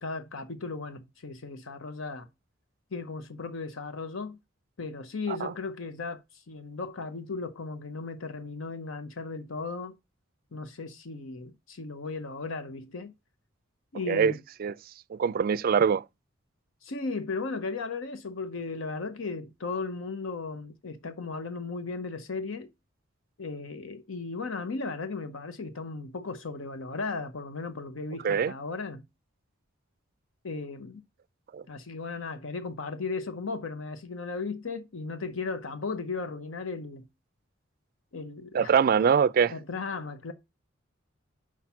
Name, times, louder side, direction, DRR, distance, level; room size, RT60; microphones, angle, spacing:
voice 1, 0.0-2.3 2.9-4.4 4.8-10.0 10.5-13.1 13.9-14.4 16.8-22.7 23.4-29.0 30.4-31.0 31.7-37.1 38.1-38.7 39.5-40.3, left 4 dB, 80° left, 0.8 m, -36 dB
voice 2, 15.1-16.0 28.2-28.5 31.5-31.6 38.5-39.5, right 6 dB, 45° right, 0.3 m, -23 dB
5.9 x 4.7 x 5.6 m
head